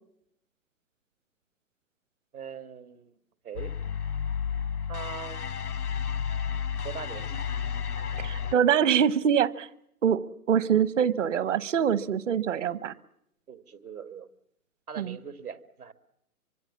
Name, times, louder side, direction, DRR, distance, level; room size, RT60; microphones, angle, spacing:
voice 1, 2.3-3.1 3.4-3.7 4.9-5.6 6.8-7.4 13.5-14.3 14.9-15.9, right 7 dB, 75° right, 13 dB, 2.1 m, -41 dB
sound 1, 3.6-8.5, left 7 dB, 80° left, 0.9 m, -32 dB
voice 2, 8.2-9.7 10.0-12.9 15.0-15.2, right 8 dB, 55° right, 18 dB, 1.2 m, -24 dB
25.0 x 24.5 x 7.3 m, 0.78 s
figure-of-eight pair, 125°, 44 cm